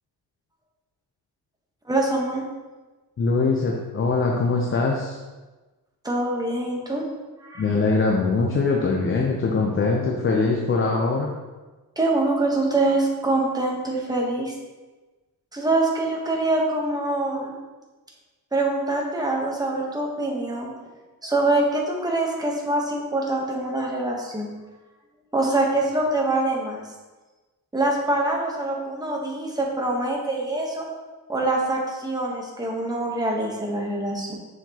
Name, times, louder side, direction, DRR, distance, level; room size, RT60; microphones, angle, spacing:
voice 1, 1.9-2.4 6.0-7.1 7.4-7.7 12.0-14.5 15.5-17.5 18.5-20.7 21.2-24.5 25.3-26.8 27.7-30.9 31.3-34.4, right 2 dB, 10° right, -1 dB, 1.1 m, -24 dB
voice 2, 3.2-5.2 7.6-11.3, left 3 dB, 35° left, -1 dB, 0.7 m, -22 dB
7.2 x 5.9 x 2.9 m, 1.2 s
wide cardioid pair, 145°, 38 cm